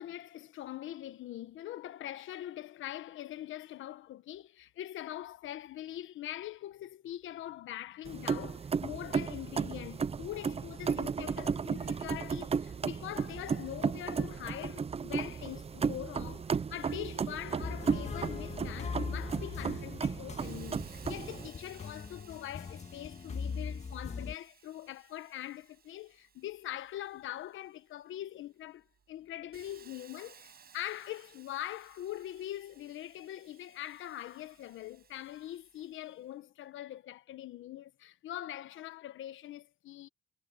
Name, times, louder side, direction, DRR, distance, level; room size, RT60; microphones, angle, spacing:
voice 1, 0.0-40.1, left 13 dB, 80° left, 1.2 m, -43 dB
sound 1, 8.1-21.5, right 6 dB, 30° right, 0.7 m, -34 dB
sound 2, 17.6-24.3, left 5 dB, 35° left, 1.8 m, -41 dB
Hiss, 20.4-28.0 28.5-36.2, right 7 dB, 50° right, 7.6 m, -60 dB
cardioid pair, 90°, 20 cm